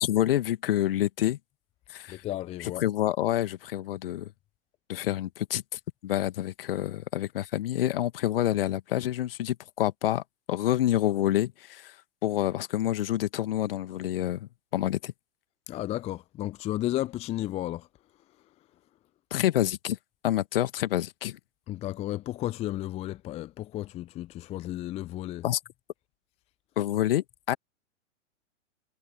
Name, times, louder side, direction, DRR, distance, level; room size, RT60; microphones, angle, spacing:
voice 1, 0.0-1.4 1.9-2.2 2.6-4.3 4.9-12.0 12.2-15.1 19.3-20.0 20.2-21.4 25.4-25.6 26.8-27.6, left 13 dB, 50° left, 1.9 m, -28 dB
voice 2, 2.1-2.8 15.7-17.9 21.7-25.4, left 14 dB, 15° left, 0.7 m, -33 dB
figure-of-eight pair, 105°, 37 cm